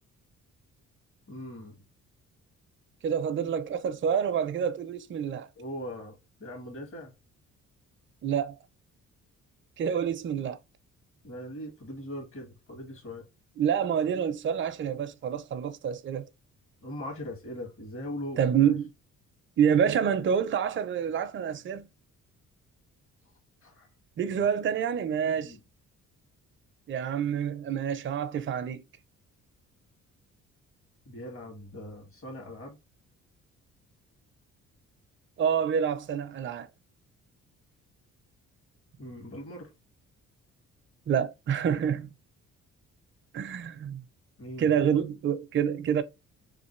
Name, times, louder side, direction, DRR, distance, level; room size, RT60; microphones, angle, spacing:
voice 1, 1.3-1.8 5.6-7.1 11.2-13.3 16.8-18.8 23.6-23.9 24.3-24.5 25.4-25.6 31.1-32.8 39.0-39.7 44.4-44.9, left 1 dB, 45° left, 1.9 m, -40 dB
voice 2, 3.0-5.5 8.2-8.6 9.8-10.6 13.6-16.3 18.4-18.9 19.6-21.9 24.2-25.6 26.9-28.8 35.4-36.7 41.1-42.1 43.3-44.0 44.6-46.0, right 8 dB, 40° right, 0.5 m, -27 dB
3.2 x 2.4 x 3.1 m
cardioid pair, 90°, 30 cm